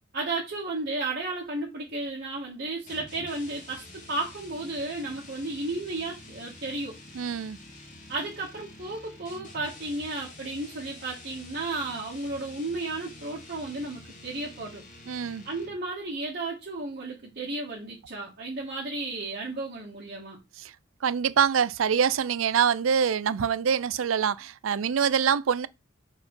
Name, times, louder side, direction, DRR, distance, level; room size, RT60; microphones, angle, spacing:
voice 1, 0.1-7.0 8.1-14.8 15.5-20.4, right 2 dB, 50° right, 2.0 m, -33 dB
sound 1, 2.9-15.9, left 2 dB, 40° left, 1.9 m, -48 dB
voice 2, 7.1-7.6 15.1-15.4 20.6-20.7 21.0-25.7, right 7 dB, 80° right, 0.5 m, -25 dB
4.5 x 4.4 x 5.5 m
head